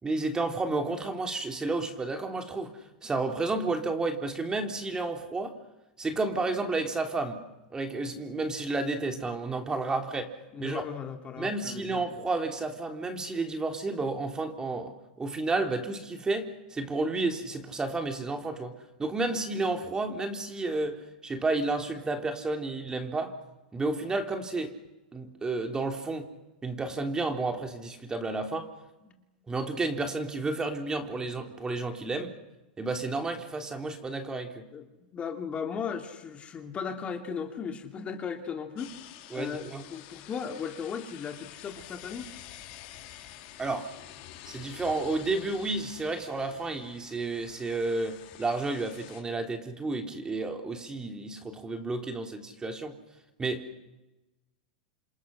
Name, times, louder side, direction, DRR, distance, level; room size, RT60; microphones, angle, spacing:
voice 1, 0.0-5.5 6.0-7.4 7.7-10.3 10.6-10.8 11.4-18.7 19.0-23.4 23.7-24.7 25.1-26.3 26.6-28.7 29.5-32.3 32.8-34.6 39.3-39.8 43.6-43.9 44.5-53.0 53.4-53.6, right 3 dB, 15° right, 5 dB, 3.4 m, -31 dB
voice 2, 10.5-12.0 29.0-29.2 34.7-34.8 35.1-38.9 39.3-42.3, left 6 dB, 25° left, 5 dB, 2.7 m, -36 dB
sound 1, 38.8-49.2, left 13 dB, 55° left, 4.0 m, -48 dB
29.5 x 27.5 x 6.5 m, 1.0 s
hypercardioid pair, 115°, 5 cm